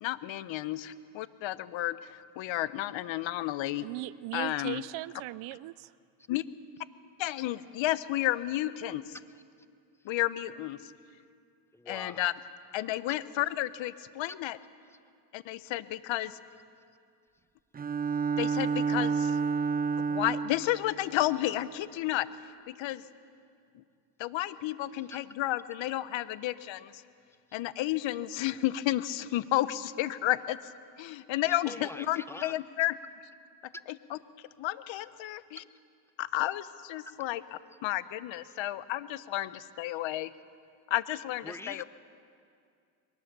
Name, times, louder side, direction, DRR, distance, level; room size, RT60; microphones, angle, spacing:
voice 1, 0.0-2.0 2.4-3.9 4.3-4.8 6.3-6.4 7.2-9.2 10.0-10.9 11.9-12.3 12.7-14.6 15.3-16.4 18.4-19.4 20.1-22.3 22.7-23.0 23.7-23.8 24.2-27.0 27.5-30.6 31.0-33.0 33.9-34.2 34.6-35.6 36.2-40.3 40.9-41.8, left 15 dB, 65° left, 15 dB, 0.9 m, -32 dB
voice 2, 3.8-5.9, right 18 dB, 75° right, 19 dB, 0.6 m, -38 dB
voice 3, 11.7-12.3 25.1-25.2 31.4-32.6 38.5-38.6 41.4-41.8, left 2 dB, 5° left, 13 dB, 0.7 m, -44 dB
Bowed string instrument, 17.7-20.8, right 5 dB, 20° right, 0.4 m, -29 dB
22.5 x 19.0 x 6.8 m, 2.3 s
supercardioid pair, 80°, 48 cm